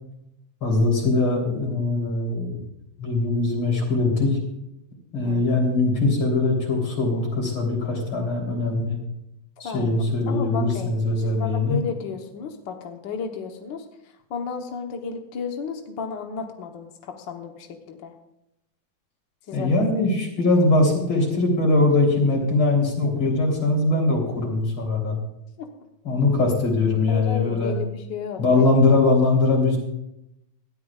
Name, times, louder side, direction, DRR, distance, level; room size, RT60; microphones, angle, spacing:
voice 1, 0.6-2.5 3.0-4.4 5.1-9.0 9.6-11.8 19.5-25.2 26.0-27.8 28.4-29.8, left 2 dB, 40° left, 0 dB, 4.2 m, -21 dB
voice 2, 9.6-10.0 10.3-10.9 11.2-13.8 14.3-18.1 19.5-19.8 25.6-25.7 27.1-28.7, left 6 dB, 70° left, 3 dB, 1.1 m, -33 dB
19.0 x 13.0 x 2.4 m, 0.84 s
omnidirectional pair, 3.6 m